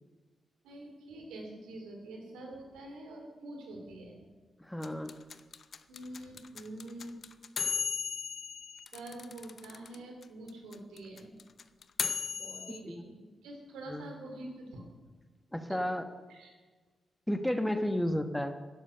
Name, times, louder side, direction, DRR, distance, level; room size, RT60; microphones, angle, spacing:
voice 1, 0.6-4.2 5.9-7.2 8.9-11.4 12.4-14.8 15.7-15.8 16.3-16.5, right 1 dB, 85° right, 1 dB, 2.9 m, -46 dB
voice 2, 4.6-5.1 12.8-13.0 13.9-14.0 15.5-16.0 17.3-18.6, left 1 dB, 10° left, 8 dB, 1.3 m, -32 dB
sound 1, 4.8-10.0 10.2-10.3 10.5-12.8, left 6 dB, 60° left, 0.7 m, -36 dB
11.5 x 11.0 x 6.8 m, 1.3 s
hypercardioid pair, 40°, 0 cm